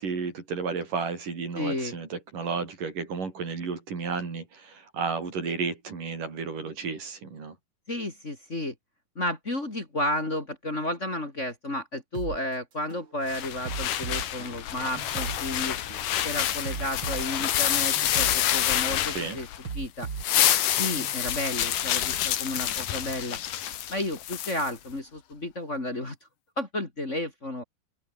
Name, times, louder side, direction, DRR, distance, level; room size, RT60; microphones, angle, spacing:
voice 1, 0.0-7.5 19.1-19.4, right 5 dB, 80° right, 6.6 m, -32 dB
voice 2, 1.5-1.9 7.9-8.7 9.1-15.8 16.2-19.5 19.7-20.1 20.7-23.4 23.9-26.2 26.6-27.6, left 1 dB, 20° left, 3.1 m, -32 dB
sound 1, 12.1-12.4 12.9-13.1 13.6-15.4 15.9-16.1 16.6-18.4 18.9-19.1 19.6-21.1, right 6 dB, 40° right, 2.8 m, -37 dB
sound 2, 13.3-19.7 20.0-24.7, left 11 dB, 80° left, 3.2 m, -28 dB
open air
omnidirectional pair, 3.7 m